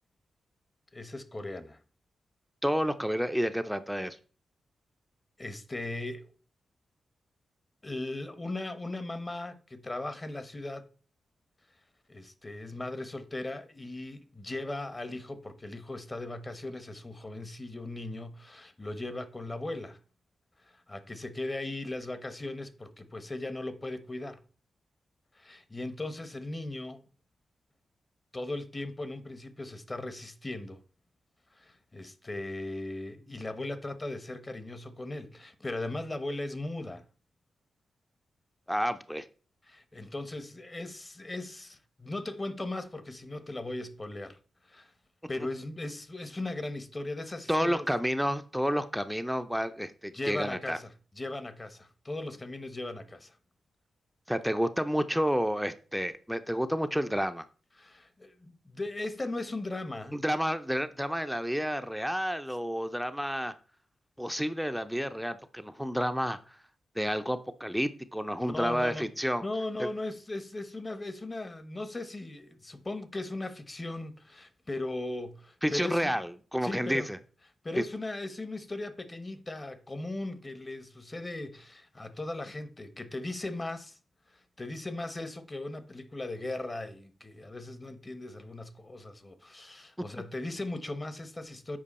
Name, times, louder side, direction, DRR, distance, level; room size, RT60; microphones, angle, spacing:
voice 1, 0.9-1.8 5.4-6.3 7.8-10.8 12.1-20.0 20.7-24.4 25.3-27.1 28.3-30.8 31.5-37.0 39.7-44.4 44.7-44.9 45.3-47.9 50.1-50.9 51.2-53.4 57.8-60.2 68.4-69.1 69.4-76.1 76.6-77.1 77.6-84.0 84.3-91.8, left 2 dB, 30° left, 0.9 m, -38 dB
voice 2, 2.6-4.2 38.7-39.3 47.5-50.8 54.3-57.4 60.1-63.5 64.2-66.6 67.0-69.4 69.8-69.9 75.6-77.2 77.8-77.9, equal, ahead, 0.5 m, -30 dB
7.5 x 4.9 x 4.2 m
cardioid pair, 60°, 0 cm